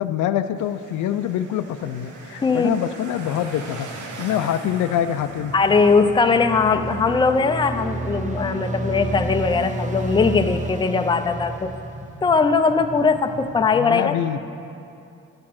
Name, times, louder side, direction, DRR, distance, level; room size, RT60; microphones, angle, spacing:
voice 1, 0.0-3.9 4.2-5.5 13.7-14.4, left 10 dB, 75° left, 11 dB, 0.5 m, -25 dB
sound 1, 0.6-13.7, right 3 dB, 75° right, 1.2 m, -43 dB
voice 2, 2.4-2.8 5.5-11.7 12.2-14.1, left 4 dB, 15° left, 8 dB, 0.5 m, -20 dB
sound 2, 3.1-13.7, left 1 dB, ahead, 1.3 m, -41 dB
sound 3, 5.2-12.5, right 3 dB, 25° right, 0.7 m, -31 dB
10.5 x 6.5 x 5.8 m, 2.6 s
cardioid pair, 90°, 30 cm